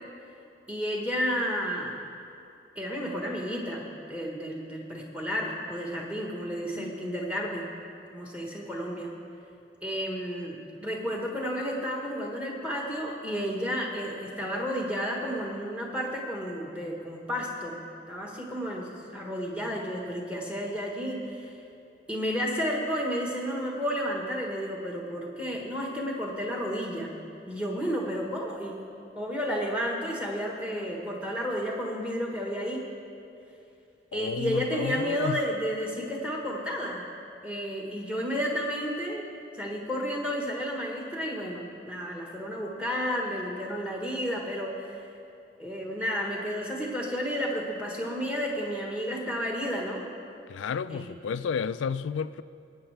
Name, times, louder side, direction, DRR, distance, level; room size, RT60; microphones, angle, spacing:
voice 1, 0.7-2.0 2.7-7.7 8.1-9.1 9.8-17.8 18.1-21.5 22.1-27.1 27.5-28.8 29.1-32.9 34.1-37.0 37.4-39.3 39.5-45.0 45.6-50.1 50.9-51.1, equal, 5° right, 1.3 m, -32 dB
voice 2, 34.1-35.4 50.5-52.4, left 6 dB, 80° left, 0.3 m, -32 dB
20.5 x 9.0 x 3.4 m
head